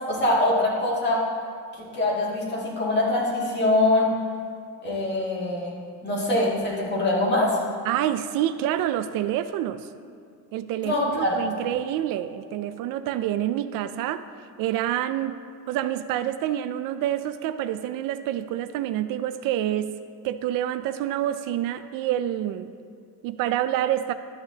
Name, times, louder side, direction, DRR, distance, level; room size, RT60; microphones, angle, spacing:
voice 1, 0.1-1.2 1.7-4.1 4.8-5.7 6.0-7.6 10.8-11.4, left 2 dB, 30° left, -4 dB, 2.0 m, -23 dB
voice 2, 7.9-9.9 10.5-14.2 14.6-15.3 15.7-19.9 20.2-22.7 23.2-24.1, right 12 dB, 75° right, 11 dB, 0.5 m, -27 dB
12.0 x 8.6 x 2.9 m, 2.5 s
cardioid pair, 155°, 34 cm